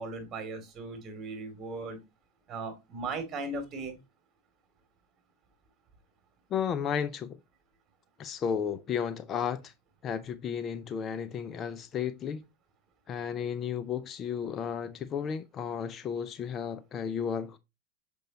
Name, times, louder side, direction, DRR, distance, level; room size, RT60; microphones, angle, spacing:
voice 1, 0.0-2.0 2.5-4.0, right 3 dB, 30° right, 2.7 m, -37 dB
voice 2, 6.5-7.4 8.2-9.7 10.0-12.4 13.1-17.6, left 7 dB, 35° left, 0.5 m, -33 dB
6.6 x 5.3 x 2.9 m
hypercardioid pair, 110°, 0 cm